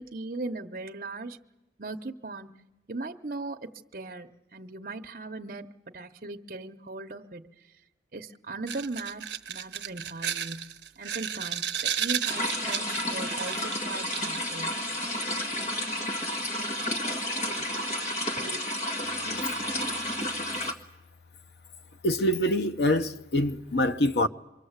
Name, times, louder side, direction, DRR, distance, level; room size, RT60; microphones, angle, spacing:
voice 1, 0.0-1.4 1.8-2.5 2.9-7.5 8.1-14.8, right 2 dB, 50° right, 0.9 m, -38 dB
sound 1, 8.7-15.6 16.8-16.9 17.5-17.8 18.4-18.6, right 9 dB, 85° right, 0.9 m, -34 dB
sound 2, 12.3-20.7, left 1 dB, 40° left, 1.8 m, -31 dB
voice 2, 22.0-24.3, left 1 dB, 70° left, 0.9 m, -25 dB
27.5 x 23.5 x 8.1 m
head